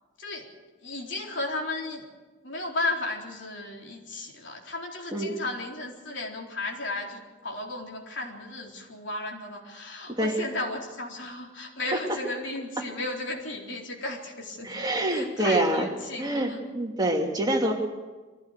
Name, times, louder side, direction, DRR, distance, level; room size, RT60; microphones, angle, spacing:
voice 1, 0.2-0.5 0.8-2.0 2.4-14.8 15.1-16.6, left 2 dB, 60° left, 0 dB, 4.1 m, -34 dB
voice 2, 14.6-15.9 16.2-17.7, right 1 dB, 20° right, 0 dB, 2.7 m, -26 dB
23.0 x 16.0 x 8.3 m, 1.3 s
head